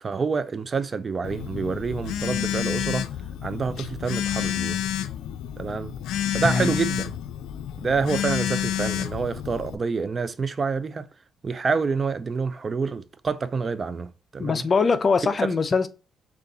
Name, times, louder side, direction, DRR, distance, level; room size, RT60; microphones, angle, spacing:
voice 1, 0.0-3.1 3.4-4.8 5.6-5.9 6.3-7.1 7.8-11.0 11.4-14.1 14.3-14.6, right 5 dB, 35° right, 0.5 m, -27 dB
Telephone, 1.2-9.8, left 11 dB, 85° left, 0.4 m, -29 dB
voice 2, 14.4-15.9, left 4 dB, 40° left, 0.6 m, -22 dB
6.5 x 2.5 x 2.7 m
cardioid pair, 90°, 0 cm